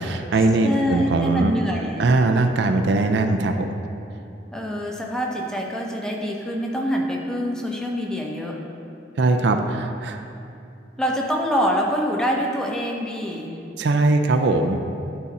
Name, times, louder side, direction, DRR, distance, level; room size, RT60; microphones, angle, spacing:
voice 1, 0.0-1.5 2.0-3.7 9.2-10.2 13.8-14.8, right 2 dB, 65° right, 5 dB, 0.4 m, -20 dB
voice 2, 0.6-2.1 4.5-8.6 11.0-13.6, equal, 5° left, -1 dB, 0.7 m, -25 dB
11.0 x 4.0 x 4.1 m, 2.6 s
head